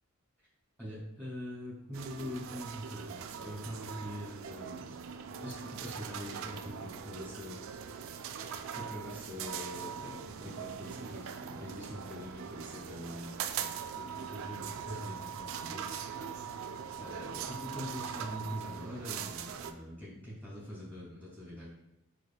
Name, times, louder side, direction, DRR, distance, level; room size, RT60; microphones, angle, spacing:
voice 1, 0.8-5.0 5.4-7.6 8.7-13.7 14.0-16.3 17.0-21.7, left 1 dB, 5° left, -8 dB, 1.6 m, -43 dB
sound 1, 1.9-19.7, right 7 dB, 60° right, 0.3 m, -41 dB
4.8 x 4.7 x 2.3 m, 0.84 s
head